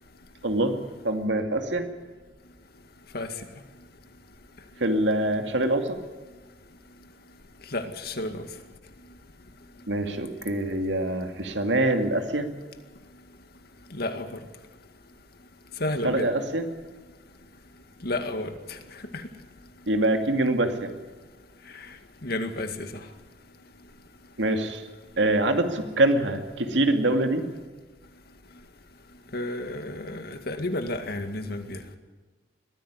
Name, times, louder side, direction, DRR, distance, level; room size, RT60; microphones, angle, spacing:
voice 1, 0.4-0.7 1.0-1.9 4.8-6.0 9.9-12.5 16.0-16.7 19.9-20.9 24.4-24.8 25.2-27.4, right 1 dB, 80° right, 6 dB, 2.4 m, -24 dB
voice 2, 7.7-8.4 13.9-14.4 15.8-16.3 18.0-18.5 22.2-22.9 29.3-31.8, left 1 dB, 60° left, 7 dB, 2.1 m, -31 dB
22.0 x 15.0 x 9.6 m, 1.3 s
head